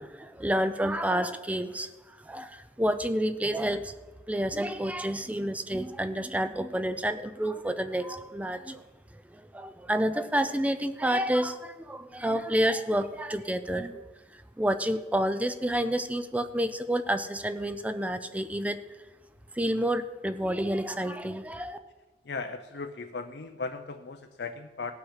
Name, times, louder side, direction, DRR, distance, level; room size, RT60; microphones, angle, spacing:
voice 1, 0.0-3.9 4.3-8.8 9.3-14.0 14.3-18.8 19.6-21.8, right 1 dB, 10° right, 11 dB, 0.4 m, -29 dB
voice 2, 22.2-24.9, left 4 dB, 65° left, 6 dB, 0.6 m, -37 dB
17.5 x 5.9 x 5.7 m, 1.2 s
head